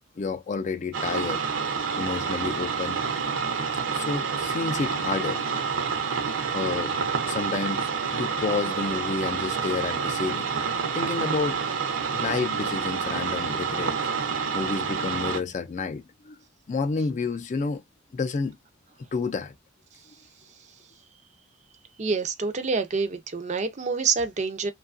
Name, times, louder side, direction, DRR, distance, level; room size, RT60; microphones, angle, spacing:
voice 1, 0.2-1.4 1.9-3.0 3.9-5.4 6.5-6.9 7.2-11.6 12.1-14.0 14.5-16.4 16.7-17.8 18.1-18.6 19.1-19.5, left 4 dB, 40° left, 0.3 m, -30 dB
sound 1, 0.9-15.4, right 5 dB, 75° right, 0.7 m, -28 dB
voice 2, 22.0-24.7, right 4 dB, 35° right, 0.4 m, -27 dB
2.7 x 2.3 x 2.4 m
head